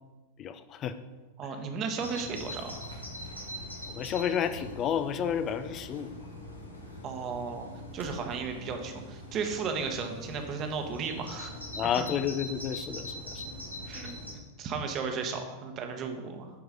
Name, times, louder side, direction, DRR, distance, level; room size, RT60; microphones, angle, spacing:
voice 1, 0.4-1.0 3.9-6.2 11.7-13.5, left 8 dB, 30° left, 11 dB, 0.6 m, -31 dB
voice 2, 1.4-2.7 7.0-7.7 7.9-11.5 12.0-12.1 13.9-16.5, right 5 dB, 35° right, 5 dB, 1.2 m, -35 dB
Bird vocalization bird call bird song, 2.0-14.3, left 1 dB, 85° left, 1.3 m, -42 dB
9.6 x 4.7 x 5.1 m, 1.2 s
figure-of-eight pair, 90°, 0 cm